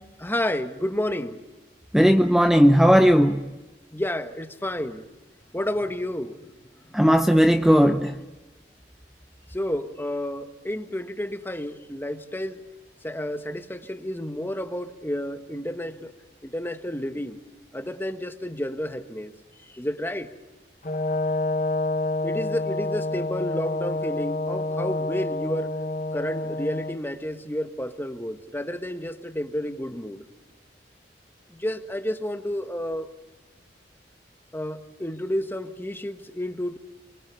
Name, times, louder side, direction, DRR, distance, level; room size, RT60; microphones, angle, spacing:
voice 1, 0.2-1.4 3.9-5.1 5.5-6.4 9.5-12.6 13.0-16.1 16.4-17.4 17.7-19.3 19.7-20.3 22.2-25.8 26.1-30.2 31.5-33.1 34.5-36.8, left 1 dB, 10° left, 9 dB, 1.5 m, -30 dB
voice 2, 1.9-3.4 6.9-8.1, equal, 5° right, 7 dB, 0.8 m, -17 dB
Brass instrument, 20.8-27.0, left 2 dB, 45° left, 1.5 m, -28 dB
28.5 x 24.5 x 7.0 m, 1.1 s
head